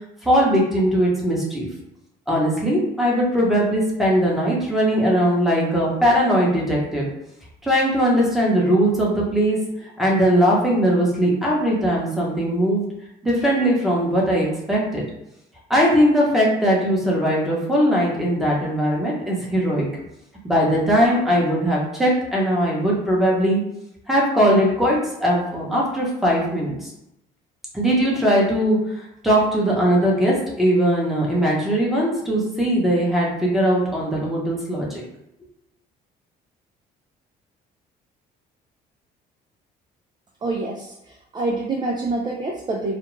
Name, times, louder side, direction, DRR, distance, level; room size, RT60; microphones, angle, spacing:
voice 1, 0.2-1.7 2.3-7.1 7.6-12.8 13.2-15.0 15.7-19.9 20.4-23.6 24.1-26.9 27.7-28.8 29.2-35.0, equal, ahead, -4 dB, 0.9 m, -20 dB
voice 2, 40.4-43.0, right 2 dB, 25° right, -1 dB, 0.4 m, -26 dB
2.4 x 2.2 x 3.1 m, 0.84 s
cardioid pair, 110°, 17 cm